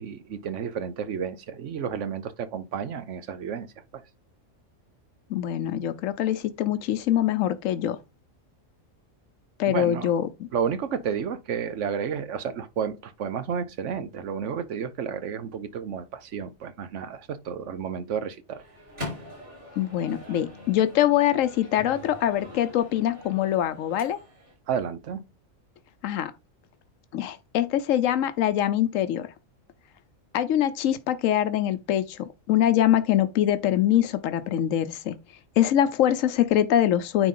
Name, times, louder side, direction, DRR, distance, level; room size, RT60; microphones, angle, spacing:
voice 1, 0.0-3.7 3.9-4.0 9.7-10.1 10.5-18.6 24.7-25.2, right 7 dB, 70° right, 1.1 m, -31 dB
voice 2, 5.3-8.0 9.6-10.5 19.8-24.2 26.0-26.3 27.1-29.3 30.3-35.2 35.6-37.3, left 11 dB, 85° left, 1.1 m, -24 dB
Microwave oven, 18.5-24.5, left 2 dB, 40° right, 5.0 m, -42 dB
9.3 x 4.0 x 3.8 m
omnidirectional pair, 1.3 m